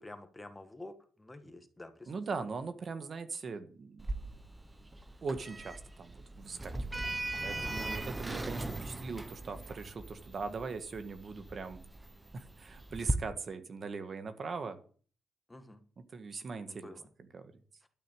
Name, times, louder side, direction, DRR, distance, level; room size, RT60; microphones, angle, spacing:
voice 1, 0.0-2.1 7.5-7.8 15.5-15.8 16.7-17.1, left 2 dB, 15° left, 8 dB, 1.8 m, -49 dB
voice 2, 2.1-4.1 5.2-7.0 7.4-11.8 12.3-14.8 16.1-16.9 17.3-17.4, right 4 dB, 40° right, 9 dB, 1.5 m, -40 dB
Sliding door, 4.0-13.1, right 2 dB, 15° right, 1.0 m, -39 dB
12.5 x 6.7 x 9.1 m, 0.42 s
cardioid pair, 125°, 0 cm